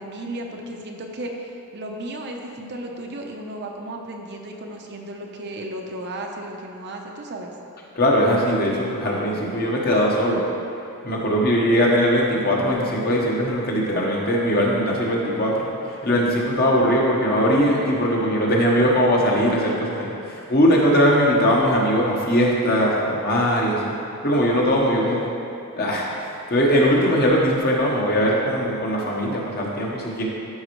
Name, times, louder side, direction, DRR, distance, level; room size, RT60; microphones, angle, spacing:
voice 1, 0.0-7.5 25.0-25.4 27.4-27.5, right 1 dB, 50° right, 1 dB, 0.8 m, -34 dB
voice 2, 7.9-10.4 11.0-15.7 16.0-23.9 24.2-25.2 25.7-30.2, equal, 45° left, -3 dB, 1.3 m, -20 dB
12.5 x 5.5 x 3.2 m, 2.6 s
head